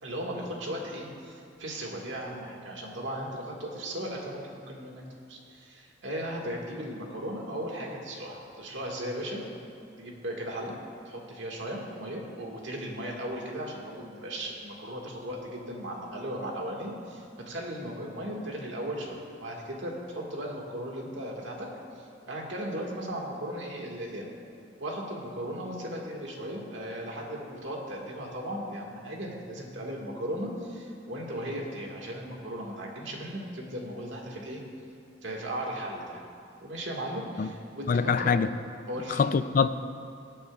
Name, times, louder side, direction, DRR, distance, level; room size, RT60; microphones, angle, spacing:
voice 1, 0.0-5.0 5.3-9.4 10.0-10.7 11.1-21.7 22.0-24.3 24.8-34.6 35.2-38.4 38.9-39.2, equal, 75° right, -1 dB, 1.8 m, -37 dB
voice 2, 37.9-38.5 39.2-39.7, left 5 dB, 45° left, 12 dB, 0.4 m, -24 dB
23.0 x 8.6 x 2.4 m, 2.5 s
head